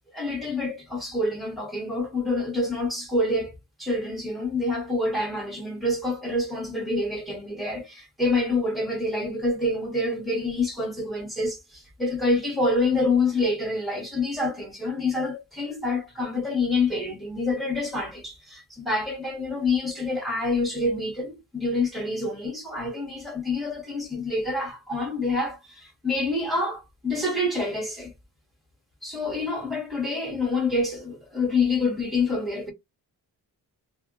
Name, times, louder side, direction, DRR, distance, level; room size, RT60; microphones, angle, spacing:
voice 1, 0.1-28.1 29.0-32.7, left 2 dB, ahead, 1.0 m, -27 dB
2.1 x 2.0 x 3.7 m
wide cardioid pair, 125°, 40 cm